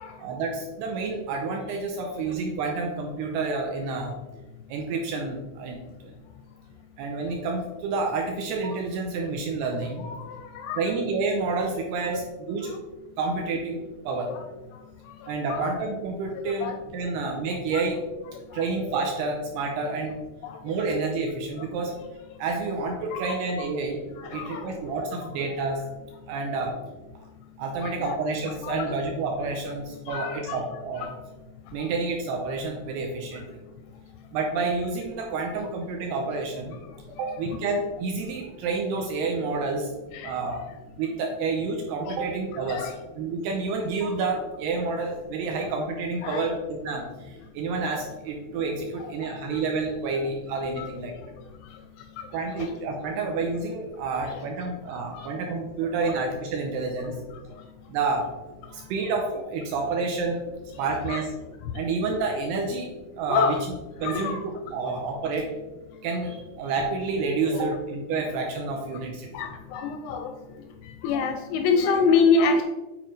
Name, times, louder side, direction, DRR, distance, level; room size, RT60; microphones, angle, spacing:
voice 1, 0.2-4.1 4.7-6.1 7.0-10.1 10.8-12.8 13.2-14.3 15.3-17.9 18.5-20.2 20.6-21.9 22.4-24.0 24.3-25.8 26.3-26.7 27.6-31.1 31.7-33.5 34.3-36.8 37.2-39.9 40.2-40.6 41.0-42.9 43.2-51.1 52.3-57.1 57.9-58.3 58.6-60.4 60.8-61.3 61.7-62.9 63.2-63.6 64.0-65.5 66.0-69.3, right 3 dB, 85° right, 2 dB, 2.4 m, -29 dB
voice 2, 9.7-10.3 10.6-10.8 12.1-12.2 13.5-13.6 14.3-14.4 15.5-15.7 16.6-16.8 17.7-17.8 20.4-20.6 23.1-23.3 24.3-24.8 27.8-28.2 28.6-29.0 30.1-30.6 31.0-31.1 37.2-37.4 40.1-40.3 42.1-42.2 42.7-42.9 46.2-46.5 50.1-50.3 50.8-50.9 52.6-52.7 54.3-54.4 55.1-55.3 56.0-56.2 61.1-61.2 63.3-63.6 64.0-64.4 67.5-67.6 69.3-70.3 71.0-72.6, left 5 dB, 85° left, 6 dB, 2.4 m, -26 dB
9.0 x 4.3 x 3.2 m, 1.2 s
omnidirectional pair, 5.1 m